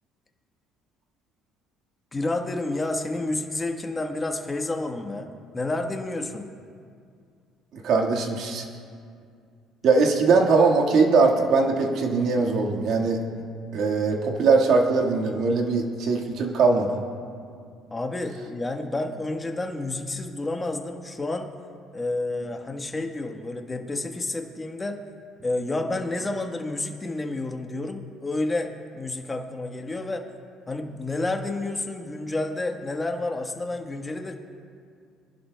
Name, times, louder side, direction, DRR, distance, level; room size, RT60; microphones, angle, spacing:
voice 1, 2.1-6.5 17.9-21.5 21.9-25.0 25.4-30.2 30.7-34.3, left 2 dB, 20° left, 4 dB, 1.2 m, -30 dB
voice 2, 7.7-8.6 9.8-13.2 13.7-17.0, right 4 dB, 65° right, 1 dB, 1.6 m, -21 dB
25.0 x 11.0 x 2.2 m, 2.3 s
cardioid pair, 100°, 0 cm